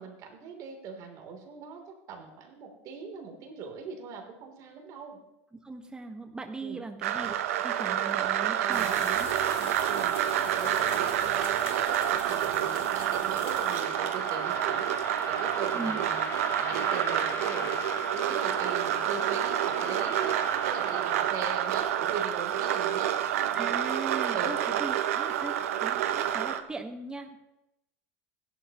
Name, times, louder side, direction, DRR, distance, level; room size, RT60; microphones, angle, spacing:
voice 1, 0.0-5.2 6.6-6.8 8.6-8.9 9.8-16.3 16.6-17.8 18.1-23.4 24.3-24.6, right 5 dB, 50° right, 2 dB, 3.1 m, -40 dB
voice 2, 5.6-9.7 15.7-16.0 23.5-27.4, right 3 dB, 10° right, 5 dB, 1.3 m, -39 dB
sound 1, 7.0-26.6, right 11 dB, 85° right, 0.8 m, -28 dB
sound 2, 8.7-13.8, left 11 dB, 75° left, 1.1 m, -45 dB
sound 3, 13.7-21.8, left 6 dB, 35° left, 1.1 m, -42 dB
16.0 x 11.0 x 3.0 m, 0.89 s
supercardioid pair, 120°, 7 cm